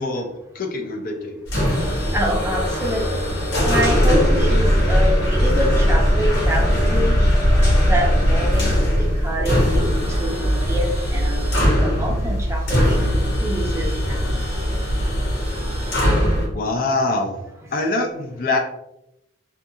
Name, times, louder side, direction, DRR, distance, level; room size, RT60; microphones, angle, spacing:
voice 1, 0.0-1.4 16.5-17.4 17.7-18.6, left 2 dB, 45° left, 3 dB, 0.4 m, -24 dB
sound 1, 1.5-16.5, equal, 65° left, 1.0 m, -19 dB
voice 2, 2.1-3.2 3.7-7.2 7.9-13.0 13.4-14.4, equal, 15° right, -1 dB, 0.5 m, -26 dB
2.5 x 2.3 x 2.7 m, 0.85 s
head